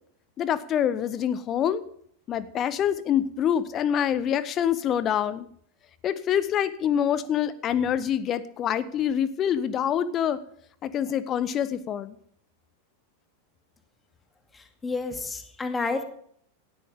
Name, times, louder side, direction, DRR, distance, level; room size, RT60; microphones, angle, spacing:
voice 1, 0.4-1.8 2.3-5.5 6.0-10.4 10.8-12.1, left 9 dB, 30° left, 16 dB, 1.1 m, -26 dB
voice 2, 14.5-16.0, left 3 dB, 15° left, 6 dB, 2.3 m, -30 dB
17.5 x 13.0 x 3.7 m, 0.63 s
figure-of-eight pair, 90°, 0 cm